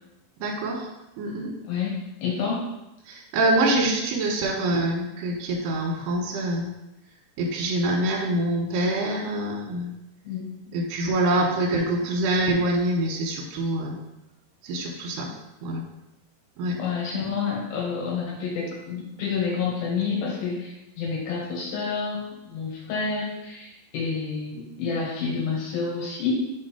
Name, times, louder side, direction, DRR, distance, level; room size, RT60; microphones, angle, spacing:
voice 1, 0.4-0.9 1.2-1.5 3.1-6.7 7.4-9.9 10.7-14.0 14.6-15.3 15.6-15.8 16.6-16.8, right 1 dB, 70° right, -1 dB, 2.6 m, -25 dB
voice 2, 1.6-2.6 10.2-10.7 16.8-26.5, left 5 dB, 80° left, -4 dB, 3.6 m, -29 dB
6.5 x 3.7 x 5.0 m, 0.93 s
omnidirectional pair, 4.7 m